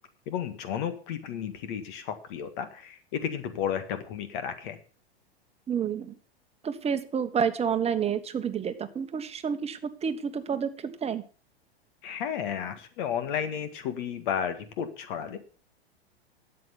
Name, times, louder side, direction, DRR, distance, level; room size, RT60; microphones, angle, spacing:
voice 1, 0.3-4.8 12.0-15.4, left 8 dB, 55° left, 10 dB, 1.9 m, -33 dB
voice 2, 5.7-6.1 6.6-11.2, right 7 dB, 20° right, 9 dB, 1.3 m, -29 dB
13.0 x 8.6 x 5.7 m, 0.39 s
hypercardioid pair, 100°, 31 cm